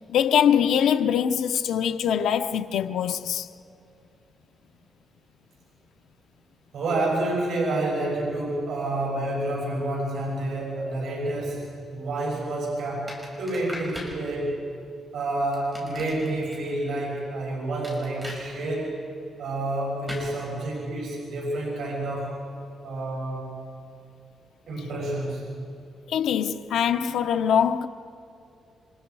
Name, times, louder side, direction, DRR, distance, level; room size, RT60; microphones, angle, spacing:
voice 1, 0.1-3.5 26.1-27.9, left 8 dB, 80° left, 0.8 m, -23 dB
voice 2, 6.7-14.6 15.1-19.0 19.4-22.4 22.8-23.5 24.7-25.4, right 2 dB, 65° right, 6.9 m, -29 dB
sound 1, 13.1-14.2 15.5-16.5 17.8-18.4 20.1-20.3, equal, 10° right, 5.7 m, -39 dB
29.5 x 25.0 x 4.8 m
cardioid pair, 155°, 0 cm